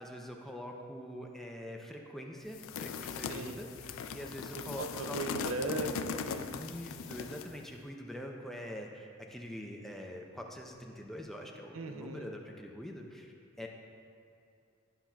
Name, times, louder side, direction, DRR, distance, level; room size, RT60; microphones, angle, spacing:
voice 1, 0.0-3.7 4.1-5.2 6.5-13.7, equal, ahead, 0 dB, 0.4 m, -44 dB
sound 1, 2.5-7.6, left 6 dB, 80° left, 0.3 m, -39 dB
voice 2, 3.3-3.6 4.8-6.5 11.7-12.3, right 2 dB, 85° right, 5 dB, 0.6 m, -38 dB
12.0 x 5.8 x 2.3 m, 2.5 s
head